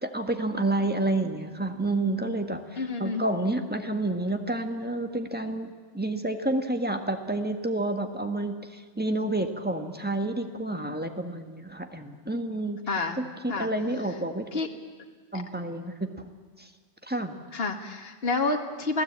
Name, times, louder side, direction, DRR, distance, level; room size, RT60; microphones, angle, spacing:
voice 1, 0.0-12.8 13.2-14.5 15.3-16.3 16.6-16.7 17.0-17.4, right 2 dB, 10° right, 6 dB, 1.6 m, -29 dB
voice 2, 2.8-3.2 10.9-11.0 12.9-13.2 13.5-13.7 14.5-14.7 15.3-15.4 17.5-19.0, left 3 dB, 50° left, 4 dB, 2.1 m, -29 dB
28.0 x 18.0 x 8.8 m, 1.5 s
omnidirectional pair, 1.3 m